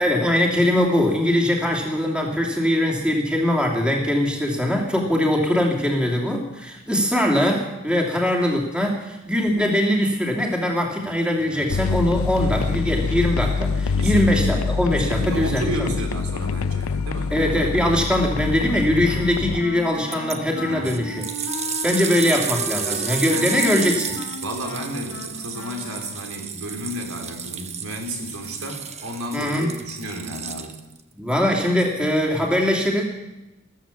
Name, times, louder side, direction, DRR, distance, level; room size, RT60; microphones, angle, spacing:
voice 1, 0.0-15.9 17.3-21.2 21.8-24.1 29.3-29.7 31.2-33.0, left 1 dB, 5° right, 0 dB, 2.6 m, -21 dB
voice 2, 11.4-11.9 14.0-14.6 14.9-17.4 20.6-21.1 22.0-22.1 23.1-23.5 24.4-30.8, right 1 dB, 85° right, 2 dB, 3.5 m, -33 dB
sound 1, 11.7-19.6, left 5 dB, 80° left, 0.5 m, -25 dB
Wind instrument woodwind instrument, 19.1-26.4, left 2 dB, 60° left, 1.9 m, -35 dB
sound 2, 20.1-20.4 20.8-31.0 31.8-31.9, right 7 dB, 30° right, 1.1 m, -31 dB
14.0 x 14.0 x 7.2 m, 1.0 s
head